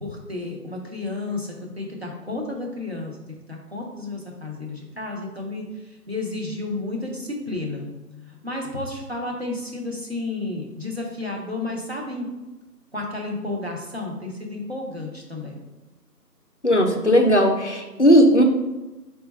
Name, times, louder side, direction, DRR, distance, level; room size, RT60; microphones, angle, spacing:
voice 1, 0.0-3.2 3.5-12.3 12.9-15.6, left 2 dB, 40° right, -1 dB, 0.7 m, -32 dB
voice 2, 16.6-18.4, equal, 50° left, 3 dB, 0.4 m, -16 dB
5.0 x 2.3 x 4.0 m, 1.1 s
figure-of-eight pair, 170°, 49 cm